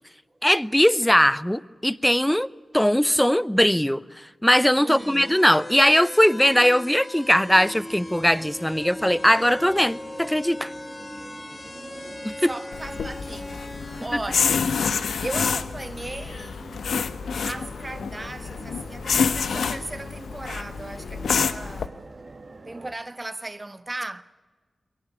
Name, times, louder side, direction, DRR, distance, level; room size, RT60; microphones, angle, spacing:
voice 1, 0.4-2.5 2.7-10.7 12.2-12.5, equal, 5° left, 0.8 m, -20 dB
voice 2, 4.8-5.4 12.4-14.8 15.2-16.7 17.4-22.0 22.6-24.2, right 2 dB, 30° right, 1.3 m, -37 dB
sound 1, 4.9-14.1, left 1 dB, 30° left, 1.9 m, -38 dB
sound 2, 7.1-22.9, right 3 dB, 55° right, 2.1 m, -46 dB
sound 3, 12.7-21.9, left 6 dB, 90° left, 0.8 m, -28 dB
22.0 x 18.5 x 9.8 m
cardioid pair, 40°, 0 cm